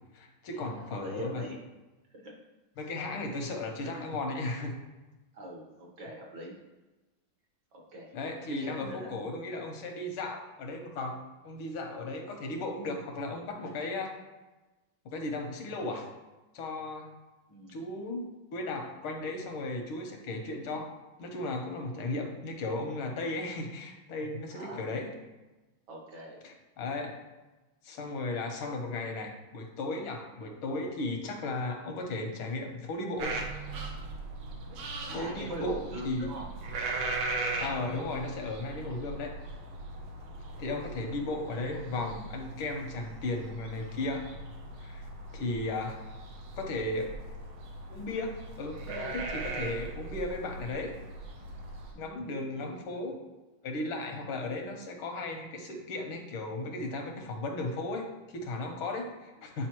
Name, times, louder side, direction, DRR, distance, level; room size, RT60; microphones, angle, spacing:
voice 1, 0.1-1.4 2.8-4.8 8.1-11.2 11.4-14.2 15.1-16.1 16.5-17.1 17.7-20.9 21.2-25.1 26.4-27.2 27.8-33.3 35.1-36.3 37.6-39.3 40.6-44.3 44.8-45.1 45.3-46.0 46.5-47.1 47.9-50.9 52.0-53.2 53.6-59.7, left 2 dB, 85° left, 3 dB, 1.9 m, -35 dB
voice 2, 0.8-1.6 2.1-2.4 5.3-6.6 7.7-8.1 8.5-9.4 17.5-17.9 24.5-24.8 25.9-26.4 35.0-36.4 51.9-52.1 52.3-52.9 54.1-54.3, right 1 dB, 60° right, -1 dB, 1.8 m, -43 dB
sound 1, 33.2-51.9, right 2 dB, 85° right, 1.8 m, -39 dB
9.7 x 5.0 x 3.0 m, 1.1 s
omnidirectional pair, 2.3 m